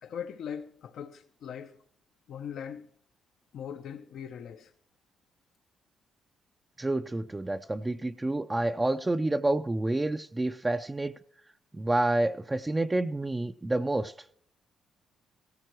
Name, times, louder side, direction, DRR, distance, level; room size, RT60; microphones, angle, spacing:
voice 1, 0.0-1.8 2.3-2.9 3.5-4.7, left 8 dB, 70° left, 0.7 m, -40 dB
voice 2, 6.8-11.1 11.7-14.1, right 2 dB, 15° right, 0.5 m, -28 dB
17.0 x 14.5 x 3.0 m
cardioid pair, 90°, 0 cm